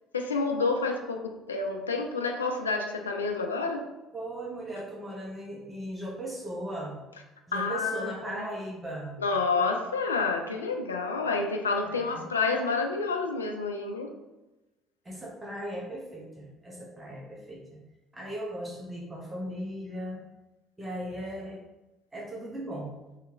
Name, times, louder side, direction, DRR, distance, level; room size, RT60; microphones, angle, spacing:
voice 1, 0.1-3.9 7.5-8.5 9.2-14.1, left 4 dB, 90° left, 4 dB, 0.3 m, -29 dB
voice 2, 4.1-7.0 7.5-9.1 11.8-12.3 15.0-17.6 18.1-20.2 20.8-21.6 22.1-22.9, right 1 dB, 20° right, -4 dB, 1.0 m, -37 dB
3.2 x 2.9 x 3.6 m, 1.0 s
hypercardioid pair, 55°, 0 cm